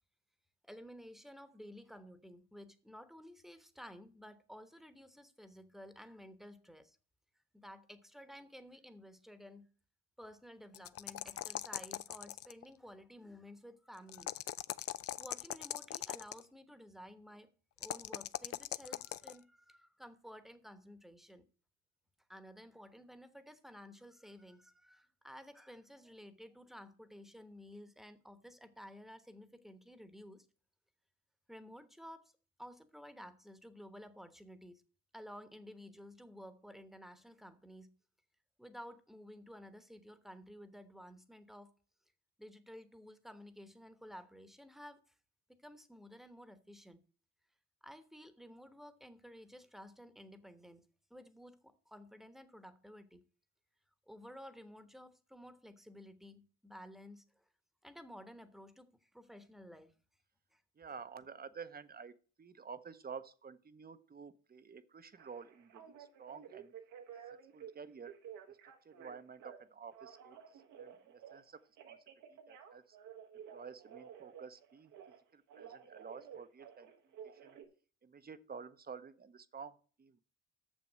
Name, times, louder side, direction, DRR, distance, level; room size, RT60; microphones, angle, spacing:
voice 1, 0.6-7.0 7.5-9.7 10.2-14.3 14.8-14.9 15.2-17.5 17.8-21.5 22.3-30.5 31.5-32.3 32.6-34.8 35.1-38.0 38.6-41.7 42.4-45.0 45.5-47.0 47.8-53.2 54.1-57.4 57.8-59.9 60.5-60.6, equal, ahead, 1.1 m, -53 dB
sound 1, 10.7-12.6 14.1-16.4 17.8-19.4, left 12 dB, 50° left, 0.4 m, -41 dB
voice 2, 60.8-66.7 67.5-68.1 68.5-68.6 68.8-71.6 71.9-72.0 72.3-73.0 73.5-74.9 75.3-76.9 77.4-77.6 78.0-80.2, right 6 dB, 30° right, 0.8 m, -51 dB
Telephone, 65.2-67.7 68.1-69.6 69.9-71.4 71.8-75.2 75.5-77.6, right 8 dB, 85° right, 1.5 m, -53 dB
6.8 x 6.3 x 7.4 m
cardioid pair, 90°, 30 cm